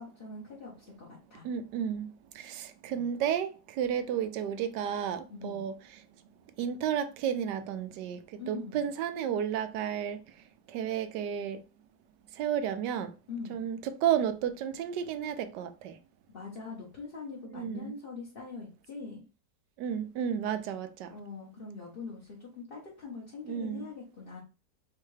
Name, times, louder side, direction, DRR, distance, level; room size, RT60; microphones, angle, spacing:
voice 1, 0.0-1.4 2.9-3.0 5.3-5.7 8.4-8.9 13.3-13.7 16.3-19.2 21.1-24.4, left 4 dB, 40° left, 1.0 m, -43 dB
voice 2, 1.4-2.1 2.4-5.7 6.6-8.2 8.5-10.2 10.7-11.6 12.4-13.1 13.5-15.9 17.5-17.9 19.8-21.1 23.5-23.8, right 9 dB, 80° right, 1.2 m, -32 dB
4.6 x 3.3 x 3.2 m
omnidirectional pair, 1.9 m